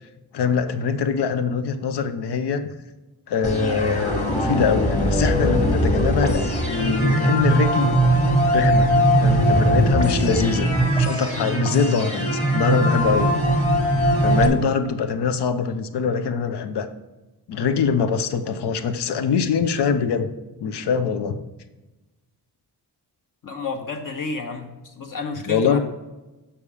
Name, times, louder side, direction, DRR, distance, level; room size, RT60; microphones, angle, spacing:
voice 1, 0.3-2.7 3.3-7.9 8.5-8.9 9.2-10.7 11.0-13.3 14.2-16.9 17.5-20.3 20.6-21.4 25.5-25.8, left 6 dB, 80° left, 10 dB, 0.8 m, -23 dB
sound 1, 3.4-14.5, right 1 dB, 15° left, 1.5 m, -20 dB
voice 2, 23.4-25.8, left 4 dB, 55° left, 4 dB, 1.3 m, -31 dB
7.0 x 5.8 x 4.9 m, 1.1 s
cardioid pair, 105°, 39 cm